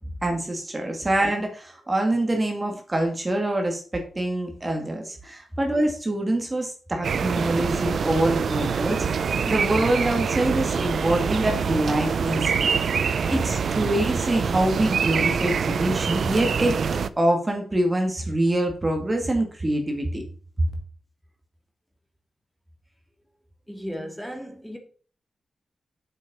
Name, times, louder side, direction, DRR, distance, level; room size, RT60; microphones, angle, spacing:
voice 1, 0.2-12.7 13.3-16.8 17.2-20.2, right 1 dB, 25° right, 2.1 m, -25 dB
sound 1, 7.0-17.1, right 6 dB, 70° right, 0.6 m, -25 dB
voice 2, 23.7-24.8, equal, 5° left, 2.4 m, -35 dB
7.8 x 6.4 x 5.4 m
wide cardioid pair, 105°, 0 cm